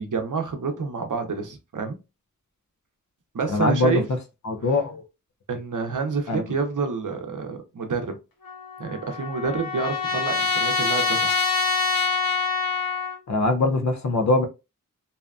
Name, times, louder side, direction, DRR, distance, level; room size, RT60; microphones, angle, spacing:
voice 1, 0.0-2.0 3.3-4.0 5.5-8.2 8.8-11.4, right 4 dB, 65° right, 0.6 m, -28 dB
voice 2, 3.5-4.0 4.4-5.0 6.3-6.4 13.3-14.4, left 2 dB, 55° left, 0.6 m, -22 dB
Trumpet, 8.4-13.2, left 5 dB, 85° left, 0.7 m, -25 dB
2.7 x 2.2 x 2.3 m
wide cardioid pair, 70°, 34 cm